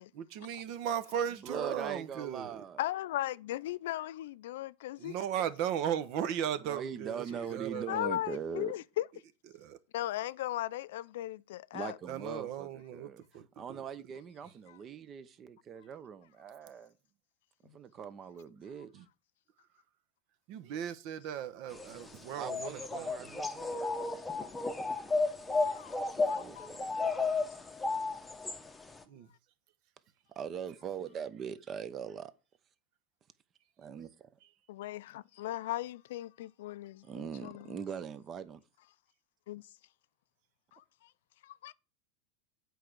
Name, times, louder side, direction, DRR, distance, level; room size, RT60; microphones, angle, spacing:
voice 1, 0.1-2.6 5.0-8.0 9.5-9.8 12.1-13.8 18.9-19.0 20.5-23.4 24.0-24.2 25.9-26.0 29.1-29.3, right 9 dB, 55° right, 1.0 m, -37 dB
voice 2, 1.3-2.8 6.6-8.7 11.7-13.2 13.6-16.9 17.7-19.0 22.4-24.0 26.1-26.8 30.3-32.3 33.8-34.3 37.0-38.6, right 7 dB, 30° right, 0.8 m, -41 dB
voice 3, 2.8-5.2 7.9-9.1 9.9-12.0 14.7-14.8 17.7-17.8 25.6-26.0 26.3-26.7 34.7-37.7 39.5-39.6 40.7-40.8 41.4-41.7, left 14 dB, 80° left, 0.4 m, -37 dB
sound 1, 21.7-29.0, left 3 dB, 10° left, 0.9 m, -33 dB
8.4 x 4.7 x 6.7 m
supercardioid pair, 135°, 0 cm